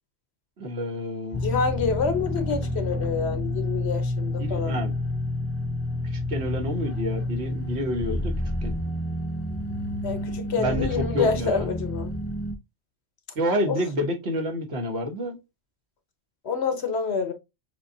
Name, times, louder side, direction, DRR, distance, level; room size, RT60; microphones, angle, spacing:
voice 1, 0.6-1.5 4.4-4.9 6.1-8.3 8.6-8.7 10.6-11.6 13.3-15.4, equal, 80° right, 1.4 m, -28 dB
sound 1, 1.3-12.5, left 1 dB, 25° left, 0.3 m, -29 dB
voice 2, 1.4-4.8 10.0-12.1 13.7-13.8 16.4-17.3, left 5 dB, 80° left, 1.2 m, -27 dB
6.6 x 2.3 x 2.6 m
omnidirectional pair, 1.1 m